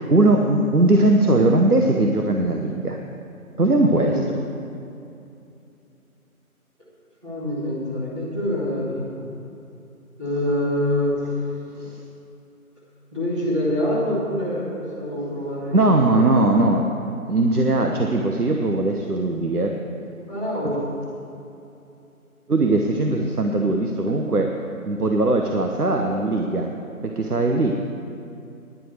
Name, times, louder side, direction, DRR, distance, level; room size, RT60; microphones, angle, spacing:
voice 1, 0.1-3.0 3.6-4.2 11.8-12.0 15.7-16.8 17.3-19.7 22.5-24.5 24.9-26.7 27.0-27.7, right 2 dB, 90° right, 3 dB, 1.1 m, -19 dB
voice 2, 7.2-9.2 10.2-11.5 13.1-16.4 20.3-20.9 25.9-26.2, left 1 dB, 20° right, -11 dB, 2.7 m, -26 dB
10.5 x 8.1 x 8.1 m, 2.7 s
figure-of-eight pair, 175°, 44 cm